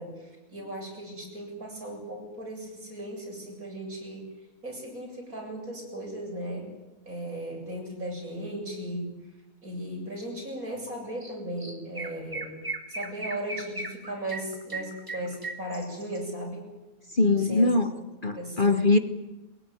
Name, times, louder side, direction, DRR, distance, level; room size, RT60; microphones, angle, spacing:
voice 1, 0.0-4.3 4.6-6.7 7.1-9.1 9.6-12.5 12.9-16.7 17.2-17.7 18.3-18.8, right 1 dB, 65° right, 1 dB, 8.0 m, -36 dB
Chirp tweet, 11.2-11.3 11.6-16.2, right 2 dB, 15° right, 2.1 m, -37 dB
voice 2, 17.1-17.9 18.2-19.0, left 3 dB, 35° left, 9 dB, 1.2 m, -22 dB
22.5 x 21.5 x 9.5 m, 1.0 s
omnidirectional pair, 1.6 m